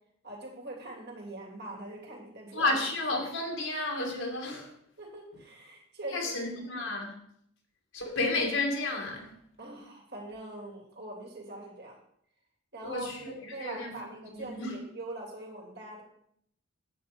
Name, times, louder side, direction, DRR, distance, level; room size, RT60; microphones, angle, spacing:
voice 1, 0.2-2.7 5.0-6.3 9.6-12.0 12.7-16.0, right 2 dB, 50° right, 3.4 m, -43 dB
voice 2, 2.5-4.7 6.1-7.1 7.9-9.3 12.8-14.7, left 2 dB, 65° left, 2.6 m, -32 dB
9.9 x 8.7 x 5.4 m
head